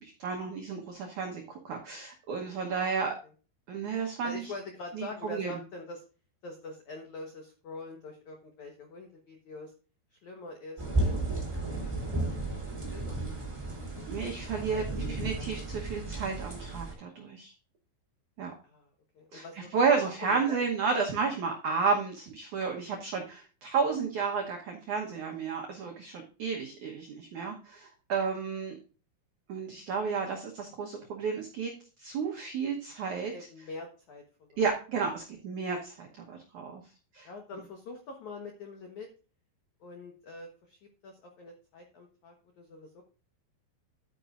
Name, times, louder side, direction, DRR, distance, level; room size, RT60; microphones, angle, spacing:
voice 1, 0.0-3.1 3.7-4.5 4.9-5.6 14.1-17.5 18.4-18.5 19.3-28.7 29.5-31.7 32.0-33.3 34.6-36.8 37.1-37.3, right 5 dB, 80° right, 1 dB, 1.7 m, -32 dB
voice 2, 4.2-6.0 6.4-9.7 10.1-11.9 12.9-13.3 14.7-15.4 18.6-18.9 19.1-19.7 20.0-20.6 33.3-34.6 37.2-39.1 39.8-43.0, left 3 dB, 75° left, 2 dB, 1.7 m, -45 dB
sound 1, 10.8-16.9, right 2 dB, 10° right, 2.2 m, -33 dB
10.5 x 9.3 x 2.5 m, 0.36 s
omnidirectional pair, 5.3 m